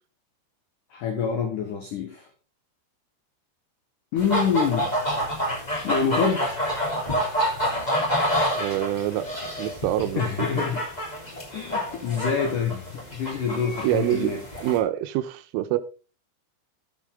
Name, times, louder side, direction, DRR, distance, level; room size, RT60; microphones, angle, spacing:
voice 1, 0.9-2.3 4.1-4.9 5.8-6.5 10.2-10.8 11.5-14.4, left 7 dB, 85° left, 1.8 m, -26 dB
sound 1, 4.2-14.8, equal, 10° left, 2.2 m, -28 dB
voice 2, 8.6-9.3 9.6-10.5 13.8-15.8, right 13 dB, 85° right, 3.3 m, -26 dB
12.0 x 8.1 x 3.7 m
omnidirectional pair, 5.7 m